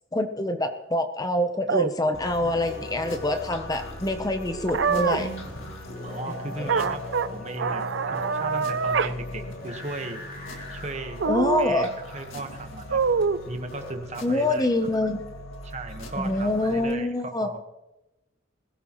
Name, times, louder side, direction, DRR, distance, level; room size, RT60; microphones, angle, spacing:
voice 1, 0.1-5.3 6.3-6.7 11.2-11.9 14.2-15.2 16.2-17.5, left 1 dB, 20° left, 7 dB, 0.8 m, -26 dB
sound 1, 1.7-1.9 4.7-5.2 6.7-7.3 7.6-9.1 9.5-9.6 11.2-11.7 12.9-13.4, right 5 dB, 60° right, 0.5 m, -24 dB
sound 2, 2.1-16.9, left 2 dB, 70° left, 2.1 m, -41 dB
sound 3, 2.4-13.9, equal, 45° left, 6.8 m, -42 dB
voice 2, 6.0-7.0 7.3-10.2 10.7-11.2 11.6-11.9 12.1-13.0 13.5-14.7 15.6-17.6, right 2 dB, 35° right, 6 dB, 1.3 m, -36 dB
21.5 x 16.0 x 3.1 m, 0.98 s
head